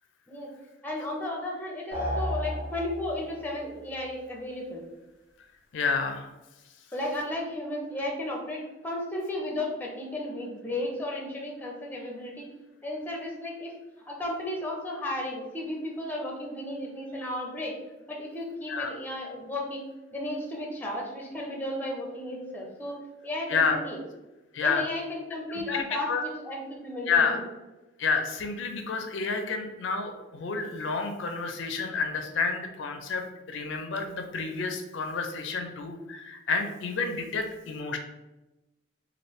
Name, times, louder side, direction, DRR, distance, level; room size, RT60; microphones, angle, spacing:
voice 1, 0.8-4.8 6.9-12.4 12.8-13.7 14.1-17.7 18.1-23.0 23.2-24.0 24.6-26.1 26.4-27.4, left 1 dB, 10° left, -1 dB, 0.5 m, -34 dB
sound 1, 1.9-3.4, equal, 80° right, 1.4 m, -32 dB
voice 2, 5.7-6.3 18.7-18.9 23.5-23.8 24.5-24.8 25.5-26.2 27.1-27.4 28.0-38.0, left 5 dB, 75° left, 5 dB, 0.4 m, -29 dB
3.1 x 2.5 x 3.1 m, 1.0 s
head